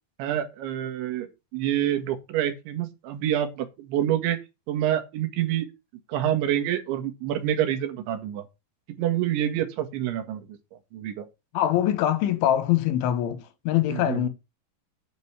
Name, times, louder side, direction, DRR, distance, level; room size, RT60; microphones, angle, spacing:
voice 1, 0.2-1.3 1.5-4.4 4.7-5.7 6.1-8.4 9.0-10.4 10.9-11.3 13.9-14.3, right 11 dB, 85° right, 3.9 m, -27 dB
voice 2, 11.5-14.3, left 12 dB, 90° left, 3.8 m, -23 dB
9.3 x 5.3 x 7.1 m
omnidirectional pair, 5.3 m